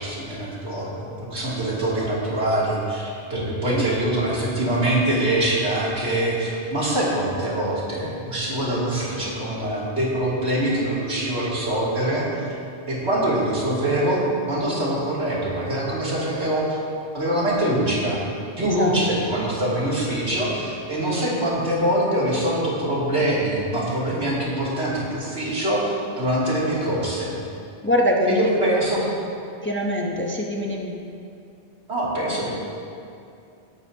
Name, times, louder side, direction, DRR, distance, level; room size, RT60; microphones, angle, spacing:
voice 1, 0.0-12.3 12.9-16.8 17.1-18.2 18.6-27.4 28.2-29.1 31.9-32.5, right 1 dB, 75° right, -7 dB, 3.1 m, -24 dB
voice 2, 27.8-28.4 29.6-30.9, equal, 10° left, -1 dB, 0.8 m, -23 dB
16.5 x 12.5 x 2.8 m, 2.5 s
omnidirectional pair, 1.1 m